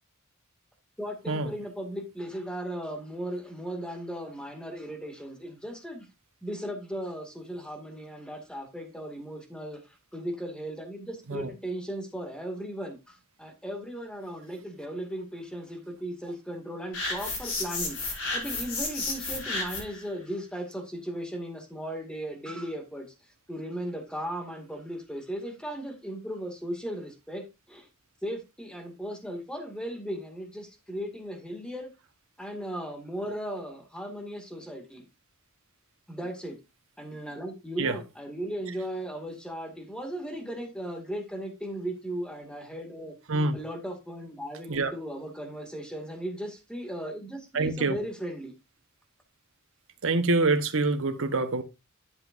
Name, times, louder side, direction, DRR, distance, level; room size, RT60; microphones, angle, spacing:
voice 1, 1.0-6.1 6.4-23.1 23.5-27.9 28.2-31.9 32.4-35.0 36.1-36.6 37.0-43.2 43.5-48.5, equal, 5° left, 2.1 m, -37 dB
sound 1, 16.9-20.0, left 3 dB, 65° left, 4.7 m, -32 dB
voice 2, 47.5-48.0 50.0-51.6, right 3 dB, 65° right, 1.1 m, -26 dB
11.0 x 7.5 x 2.6 m
head